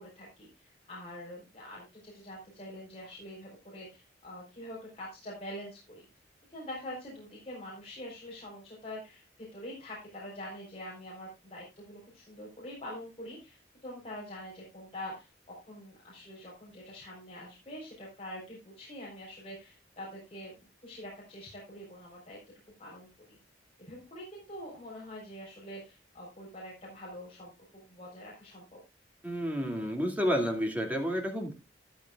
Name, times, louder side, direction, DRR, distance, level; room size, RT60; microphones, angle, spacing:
voice 1, 0.0-6.0 6.5-20.5 20.8-22.4 22.8-23.4 23.8-28.8, left 1 dB, 30° left, -4 dB, 4.0 m, -45 dB
voice 2, 29.2-31.5, equal, 10° right, 2 dB, 2.3 m, -30 dB
12.5 x 12.5 x 2.4 m, 0.25 s
head